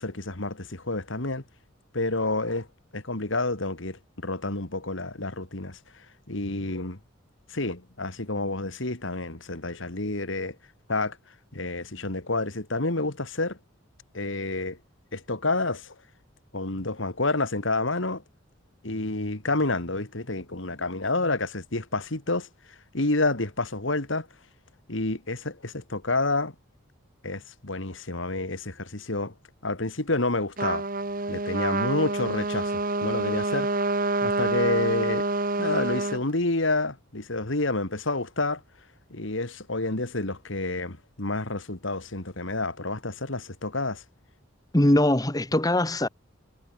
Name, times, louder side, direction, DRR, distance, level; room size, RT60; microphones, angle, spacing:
voice 1, 0.0-1.4 1.9-2.7 2.9-7.0 7.5-10.6 10.9-11.2 11.5-13.6 14.1-14.8 15.1-15.9 16.5-18.2 18.8-24.3 24.9-26.5 27.2-29.3 29.6-30.8 31.3-33.7 34.2-35.3 35.6-38.6 39.1-44.0, left 2 dB, 65° left, 2.4 m, -29 dB
Trumpet, 30.6-36.2, right 2 dB, 45° right, 2.2 m, -27 dB
voice 2, 44.7-46.1, left 1 dB, 20° left, 1.4 m, -21 dB
head